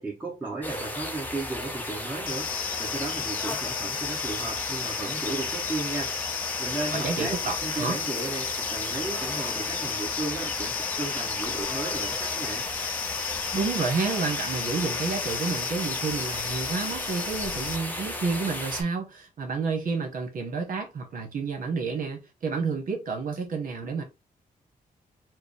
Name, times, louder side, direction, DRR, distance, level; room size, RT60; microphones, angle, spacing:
voice 1, 0.0-6.1 6.6-12.7, right 3 dB, 10° right, 1.1 m, -35 dB
sound 1, 0.6-18.8, left 1 dB, 10° left, 0.7 m, -34 dB
sound 2, 2.3-17.8, left 8 dB, 70° left, 0.5 m, -34 dB
voice 2, 6.9-8.0 13.5-24.0, right 4 dB, 70° right, 1.0 m, -30 dB
4.8 x 2.0 x 3.2 m
wide cardioid pair, 155°, 15 cm